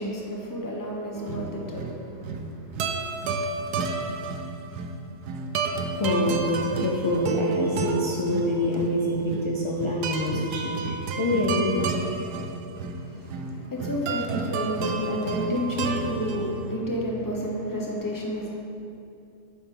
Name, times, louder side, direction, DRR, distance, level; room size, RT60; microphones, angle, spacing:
voice 1, 0.0-2.9 12.9-18.5, left 1 dB, 15° left, -2 dB, 0.9 m, -31 dB
sound 1, 1.1-16.8, right 4 dB, 80° right, 1.2 m, -31 dB
voice 2, 6.0-11.8, left 1 dB, 45° left, -4 dB, 0.3 m, -26 dB
9.6 x 7.0 x 3.9 m, 2.8 s
omnidirectional pair, 1.7 m